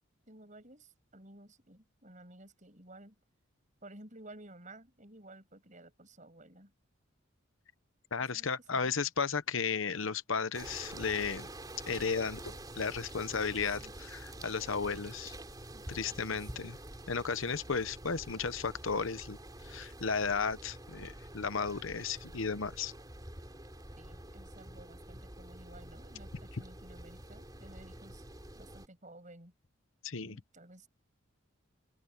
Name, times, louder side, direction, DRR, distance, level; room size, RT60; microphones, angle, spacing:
voice 1, 0.3-3.2 3.8-6.7 8.2-9.0 13.8-14.0 14.3-14.4 15.7-16.7 24.0-28.2 28.5-29.5 30.2-30.9, right 1 dB, 35° right, 7.6 m, -54 dB
voice 2, 8.1-11.5 11.9-15.3 15.9-16.8 17.1-19.4 19.6-22.9 30.0-30.4, left 5 dB, 70° left, 0.9 m, -34 dB
sound 1, 10.5-28.9, right 1 dB, 20° right, 3.6 m, -48 dB
open air
head